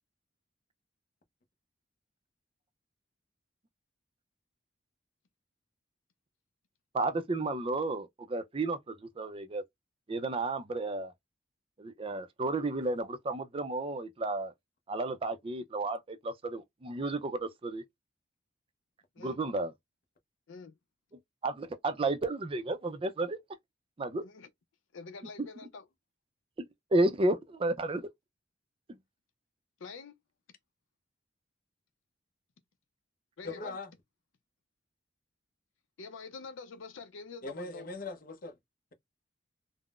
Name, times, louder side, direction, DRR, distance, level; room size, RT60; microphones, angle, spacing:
voice 1, 6.9-9.6 10.1-11.1 11.8-14.5 14.9-17.8 19.2-19.7 21.4-23.4 24.0-24.2 25.4-25.5 26.9-28.1, right 2 dB, 30° right, 0.4 m, -32 dB
voice 2, 24.2-24.5 24.9-25.9 29.8-30.2 33.4-33.8 36.0-37.9, left 4 dB, 85° left, 0.5 m, -46 dB
voice 3, 33.4-33.9 37.4-38.6, left 2 dB, 50° left, 0.7 m, -40 dB
3.6 x 2.0 x 2.3 m
head